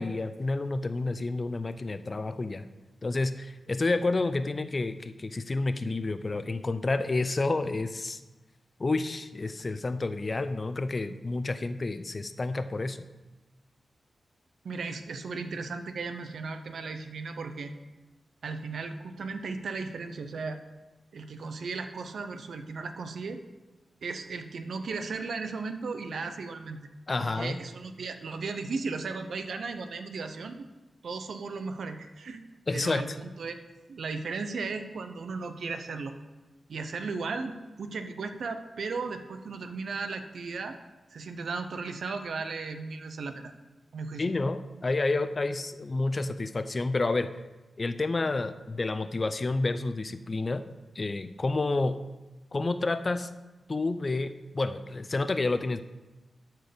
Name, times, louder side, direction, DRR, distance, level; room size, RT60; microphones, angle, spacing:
voice 1, 0.0-2.7 3.0-8.2 8.8-13.0 27.1-27.6 32.7-33.2 44.2-47.3 47.8-50.6 50.9-52.0 52.5-53.3 53.7-55.8, left 3 dB, 45° left, 11 dB, 0.6 m, -29 dB
voice 2, 14.6-17.7 18.4-20.6 21.1-23.4 24.0-26.9 27.2-30.7 31.0-32.4 32.7-33.6 33.9-36.2 36.7-40.8 41.1-43.5 43.9-44.3, right 4 dB, 80° right, 8 dB, 0.7 m, -36 dB
13.0 x 4.5 x 5.2 m, 1.1 s
cardioid pair, 45°, 0 cm